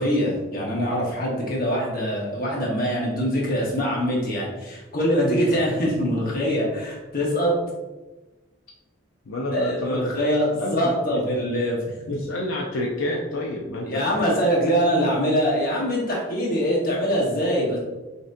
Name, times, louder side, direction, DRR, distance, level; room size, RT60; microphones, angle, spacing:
voice 1, 0.0-7.6 9.5-11.8 13.9-17.8, equal, 45° left, -3 dB, 1.1 m, -23 dB
voice 2, 9.3-10.0 10.6-11.2 12.1-14.1, left 1 dB, 70° left, -2 dB, 0.5 m, -29 dB
5.8 x 2.7 x 2.6 m, 1.2 s
head